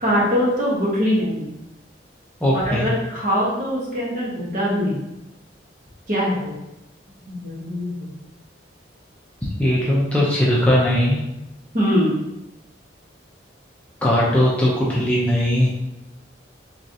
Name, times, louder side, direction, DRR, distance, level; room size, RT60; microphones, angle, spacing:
voice 1, 0.0-1.5 2.5-5.0 6.1-6.5 7.3-8.0 11.7-12.2, equal, 45° right, -5 dB, 1.1 m, -22 dB
voice 2, 2.4-2.9 9.6-11.2 14.0-15.7, left 1 dB, 5° left, -6 dB, 0.5 m, -19 dB
3.8 x 3.1 x 2.7 m, 0.90 s
head